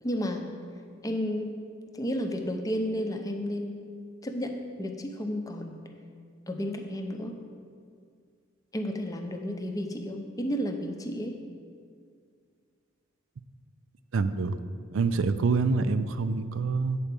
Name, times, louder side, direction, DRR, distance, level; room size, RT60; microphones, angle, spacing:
voice 1, 0.0-0.5 1.0-1.5 1.9-3.8 4.2-5.8 6.5-7.4 8.7-11.4, equal, 15° left, 4 dB, 0.6 m, -32 dB
voice 2, 14.1-14.6 14.9-17.0, right 4 dB, 70° right, 11 dB, 0.4 m, -26 dB
8.5 x 4.5 x 6.8 m, 2.2 s
head